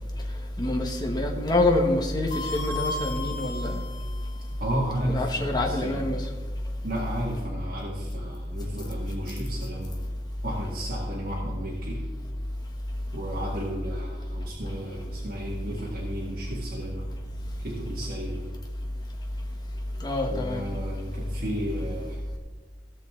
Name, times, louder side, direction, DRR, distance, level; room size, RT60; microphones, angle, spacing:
voice 1, 0.6-3.8 5.0-6.2 20.0-20.6, left 2 dB, 25° left, 1 dB, 1.3 m, -26 dB
sound 1, 2.3-4.7, left 3 dB, 50° left, 3.3 m, -35 dB
voice 2, 4.6-6.0 6.8-10.0 10.4-12.0 13.1-17.1 17.6-18.5 20.3-22.2, equal, 55° right, -5 dB, 1.9 m, -33 dB
16.5 x 6.6 x 3.8 m, 1.3 s
head